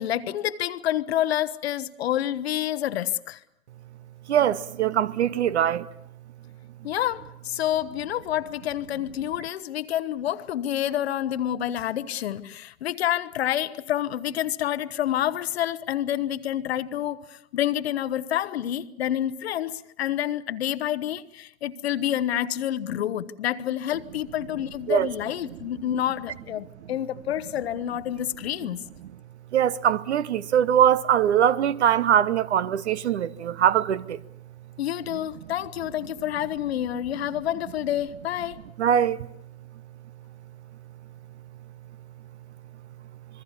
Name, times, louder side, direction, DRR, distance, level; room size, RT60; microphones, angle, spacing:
voice 1, 0.0-3.4 6.8-28.8 34.8-38.6, left 11 dB, 50° left, 1.0 m, -28 dB
voice 2, 4.3-5.9 24.9-25.1 29.5-34.2 38.8-39.2, right 9 dB, 55° right, 0.9 m, -22 dB
27.0 x 22.0 x 7.2 m
hypercardioid pair, 130°, 40 cm